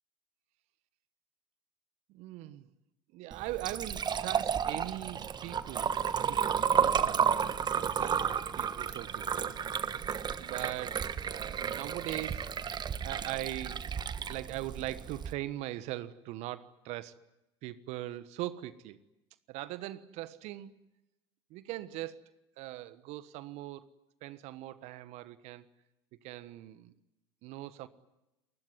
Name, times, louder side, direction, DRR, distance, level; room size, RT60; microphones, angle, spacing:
voice 1, 2.1-2.7 3.1-8.3 8.6-9.6 10.4-13.9 14.3-17.1 17.6-19.0 19.5-20.9 21.5-22.3 22.6-23.8 24.2-25.7 26.2-26.9 27.4-27.9, right 15 dB, 55° right, 1.3 m, -41 dB
Liquid, 3.3-15.3, right 7 dB, 35° right, 1.3 m, -32 dB
27.5 x 20.5 x 9.7 m
hypercardioid pair, 70°, 13 cm